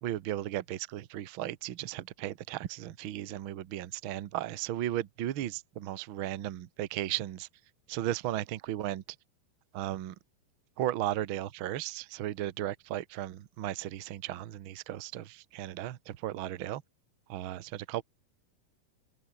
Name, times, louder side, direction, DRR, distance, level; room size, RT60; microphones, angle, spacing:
voice 1, 0.0-7.5 7.9-9.0 9.7-10.1 10.8-16.8 17.3-18.0, right 13 dB, 75° right, 1.2 m, -35 dB
open air
omnidirectional pair, 4.0 m